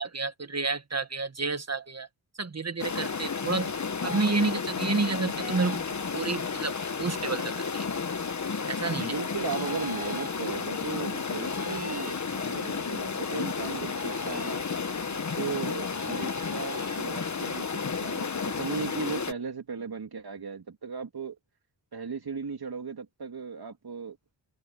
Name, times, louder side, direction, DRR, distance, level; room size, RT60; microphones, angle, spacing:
voice 1, 0.0-2.1 2.4-3.7 4.0-7.9 8.7-9.2 15.1-15.2, right 3 dB, 35° right, 1.7 m, -30 dB
sound 1, 2.8-19.3, left 5 dB, 40° left, 1.2 m, -32 dB
sound 2, 4.1-4.3 5.4-5.9 7.9-8.1 9.5-10.4 11.4-12.2 13.9-14.6 15.9-17.0, right 1 dB, 20° right, 5.1 m, -42 dB
voice 2, 8.9-14.6 15.3-21.4 21.9-24.2, right 5 dB, 55° right, 3.1 m, -36 dB
open air
wide cardioid pair, 80°, 44 cm